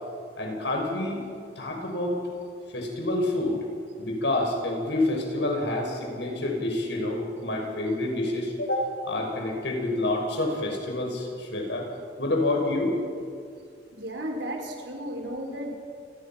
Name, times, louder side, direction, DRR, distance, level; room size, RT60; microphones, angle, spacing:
voice 1, 0.4-1.2 1.6-2.2 2.7-3.6 4.0-11.9 12.2-13.0, left 2 dB, 80° left, 1 dB, 6.2 m, -28 dB
voice 2, 13.9-15.7, equal, 85° right, 2 dB, 5.0 m, -34 dB
28.5 x 22.0 x 6.0 m, 2.3 s
head